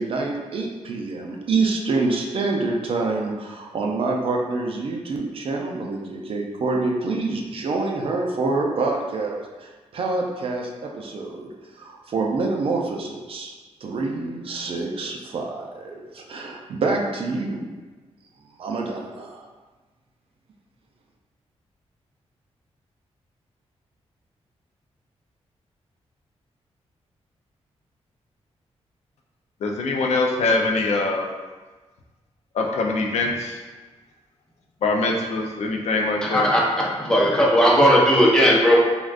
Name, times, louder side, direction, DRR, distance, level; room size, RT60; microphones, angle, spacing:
voice 1, 0.0-13.5 13.8-17.8 18.6-19.5, right 3 dB, 55° right, 1 dB, 0.4 m, -26 dB
voice 2, 29.6-31.2 32.6-33.6 34.8-36.5, left 3 dB, 80° left, 1 dB, 0.4 m, -23 dB
voice 3, 36.2-38.8, equal, 5° left, -4 dB, 0.5 m, -17 dB
3.4 x 2.3 x 2.4 m, 1.3 s
wide cardioid pair, 135°, 11 cm